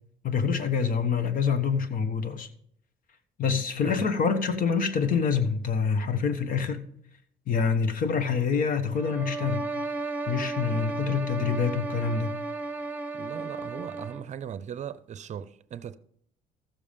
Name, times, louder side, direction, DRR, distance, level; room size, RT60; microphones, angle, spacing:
voice 1, 0.2-2.5 3.4-6.9 7.5-9.7 10.3-12.3, left 6 dB, 55° left, 1.3 m, -26 dB
sound 1, 8.9-14.3, right 3 dB, 10° right, 1.1 m, -34 dB
voice 2, 10.7-11.2 13.1-16.0, right 9 dB, 45° right, 0.6 m, -39 dB
14.5 x 7.1 x 5.2 m
cardioid pair, 110°, 17 cm